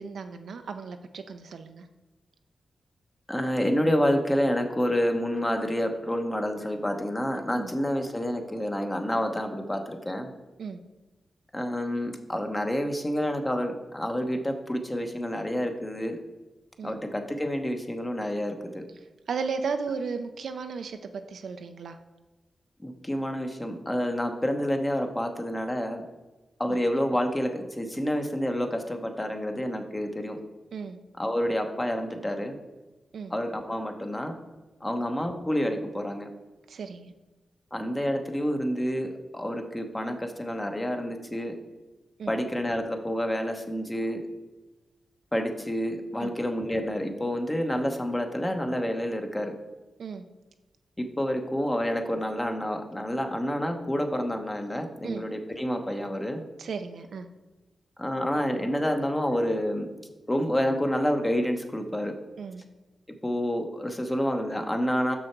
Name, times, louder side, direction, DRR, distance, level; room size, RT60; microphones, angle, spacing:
voice 1, 0.0-1.9 7.6-7.7 10.6-10.8 16.8-17.0 19.3-22.0 26.7-26.8 30.7-31.0 33.1-33.3 36.7-37.1 42.2-42.3 46.2-46.4 50.0-50.2 55.0-55.2 56.6-57.3 62.4-62.6, right 5 dB, 80° right, 8 dB, 0.5 m, -35 dB
voice 2, 3.3-10.3 11.5-16.2 16.8-18.8 22.8-26.0 26.6-30.4 31.2-32.6 33.3-34.4 34.8-36.3 37.7-41.6 42.3-44.2 45.3-49.5 51.0-56.4 58.0-59.9 60.3-62.2 63.2-65.1, equal, 20° left, 5 dB, 1.0 m, -28 dB
6.4 x 6.1 x 4.6 m, 1.2 s
cardioid pair, 60°, 0 cm